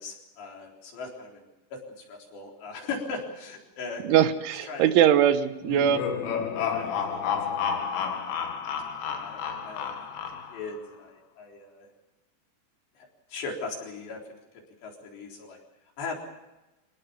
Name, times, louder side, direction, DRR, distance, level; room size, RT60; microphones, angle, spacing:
voice 1, 0.0-1.4 1.7-1.8 2.1-4.0 4.7-4.9 6.7-8.5 9.1-9.9 10.5-11.9 13.0-14.2 14.8-15.6 16.0-16.2, left 4 dB, 65° left, 0 dB, 6.1 m, -39 dB
voice 2, 4.1-6.0, right 10 dB, 80° right, 10 dB, 3.6 m, -21 dB
sound 1, 5.6-10.7, left 7 dB, 85° left, 4.6 m, -31 dB
25.5 x 18.5 x 7.2 m, 1.0 s
omnidirectional pair, 5.5 m